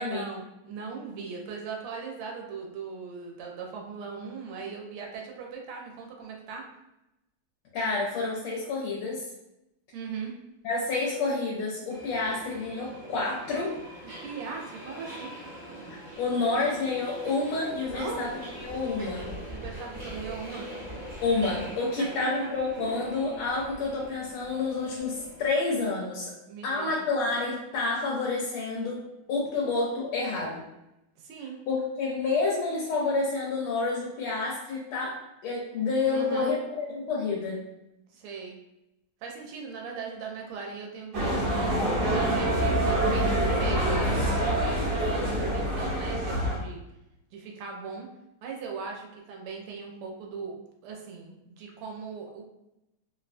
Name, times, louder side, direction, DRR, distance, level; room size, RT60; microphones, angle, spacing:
voice 1, 0.0-6.6 9.9-10.3 14.2-15.4 17.9-18.2 19.5-20.7 22.0-22.5 26.5-26.9 31.2-31.6 36.0-36.5 38.1-38.6 39.2-46.8 47.3-48.1 48.4-52.4, right 5 dB, 85° right, 0 dB, 1.5 m, -39 dB
voice 2, 7.7-9.2 10.6-13.7 16.2-19.3 21.2-26.3 26.6-29.0 29.3-30.6 31.7-35.2 35.4-37.6, left 3 dB, 80° left, -4 dB, 1.5 m, -29 dB
Subway metro underground, 11.9-25.5, right 1 dB, 35° right, 0.7 m, -42 dB
sound 1, 41.1-46.6, right 1 dB, 60° right, 1.2 m, -26 dB
3.6 x 2.1 x 2.5 m, 0.89 s
omnidirectional pair, 2.4 m